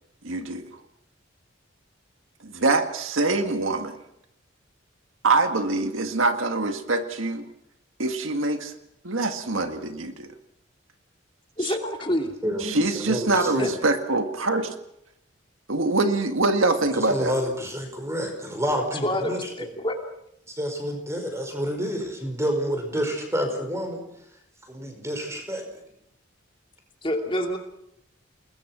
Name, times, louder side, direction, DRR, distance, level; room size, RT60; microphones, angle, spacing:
voice 1, 0.2-0.7 2.4-4.0 5.2-7.5 8.0-8.7 9.0-10.3 11.6-11.8 12.6-14.7 15.7-17.4, right 3 dB, 90° right, 7 dB, 1.8 m, -24 dB
voice 2, 11.6-12.3 13.6-13.7 19.0-19.9 27.0-27.6, left 1 dB, 25° left, 3 dB, 2.7 m, -27 dB
voice 3, 12.4-13.7 16.9-19.7 20.5-24.0 24.7-25.6, equal, 15° right, 5 dB, 5.2 m, -29 dB
29.5 x 20.5 x 6.2 m, 0.79 s
head